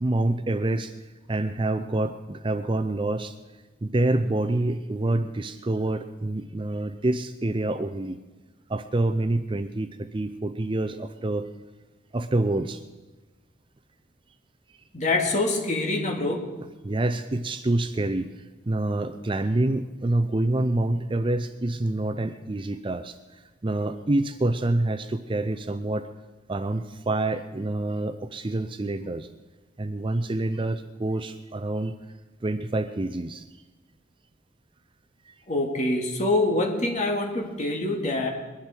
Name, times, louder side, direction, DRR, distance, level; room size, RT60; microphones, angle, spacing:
voice 1, 0.0-0.9 1.3-3.3 3.8-8.2 8.7-11.5 12.1-12.8 16.8-18.3 18.7-23.1 23.6-26.1 26.5-29.3 29.8-31.9 32.4-33.4 35.3-35.4, right 2 dB, 25° right, 10 dB, 0.5 m, -27 dB
voice 2, 14.9-16.5 35.5-38.3, left 2 dB, 35° left, 1 dB, 2.3 m, -25 dB
21.5 x 11.5 x 4.5 m, 1.2 s
head